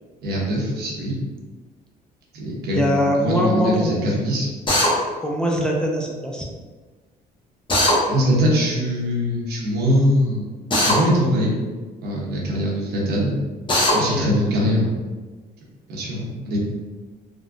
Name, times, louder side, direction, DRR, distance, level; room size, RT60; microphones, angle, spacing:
voice 1, 0.2-1.1 2.3-4.5 8.1-10.4 10.8-11.5 12.0-13.4 13.9-15.0 15.9-16.6, equal, 75° right, -4 dB, 1.0 m, -22 dB
voice 2, 2.7-3.9 5.2-6.5 14.0-14.3, equal, 5° left, -1 dB, 0.4 m, -22 dB
Drill, 4.7-4.9 7.7-8.0 10.7-11.0 13.7-14.0, left 1 dB, 30° left, 0.9 m, -18 dB
3.5 x 2.2 x 2.5 m, 1.3 s
cardioid pair, 110°, 17 cm